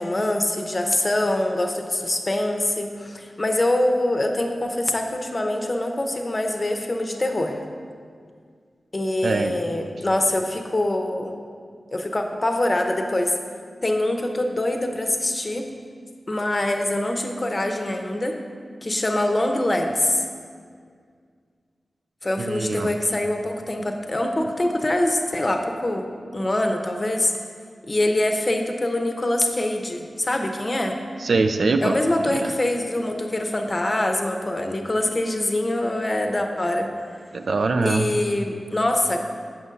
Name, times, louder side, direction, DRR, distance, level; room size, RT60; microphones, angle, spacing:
voice 1, 0.0-7.6 8.9-11.3 11.9-13.3 13.8-15.7 16.3-18.4 18.8-20.2 22.2-27.3 27.9-31.0 31.8-36.9 37.8-39.2, left 1 dB, 35° left, 4 dB, 0.6 m, -24 dB
voice 2, 9.2-9.6 22.4-22.9 31.2-32.0 32.2-32.5 37.3-38.1, right 3 dB, 75° right, 7 dB, 0.3 m, -23 dB
6.9 x 5.4 x 3.8 m, 2.1 s
cardioid pair, 50°, 0 cm